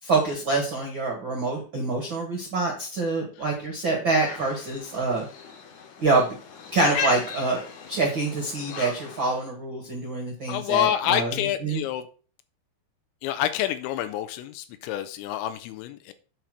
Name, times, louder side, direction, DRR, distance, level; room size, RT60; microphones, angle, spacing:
voice 1, 0.0-5.2 6.0-6.3 6.7-7.6 7.9-11.8, right 3 dB, 70° right, 0 dB, 1.1 m, -26 dB
sound 1, 4.1-9.4, left 6 dB, 70° left, 1.7 m, -37 dB
voice 2, 10.5-12.0 13.2-16.1, left 12 dB, 90° left, 10 dB, 3.0 m, -27 dB
9.3 x 4.2 x 6.4 m, 0.39 s
omnidirectional pair, 5.3 m